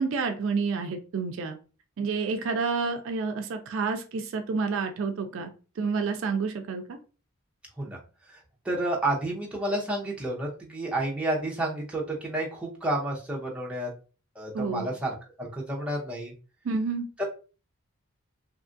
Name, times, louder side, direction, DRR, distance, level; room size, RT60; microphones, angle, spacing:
voice 1, 0.0-1.5 2.0-5.5 5.8-7.0 14.5-14.9 16.6-17.1, right 4 dB, 60° right, 6 dB, 0.3 m, -29 dB
voice 2, 8.6-13.9 14.4-16.3 17.2-17.3, right 1 dB, 5° right, -3 dB, 0.6 m, -30 dB
2.8 x 2.3 x 2.5 m, 0.35 s
head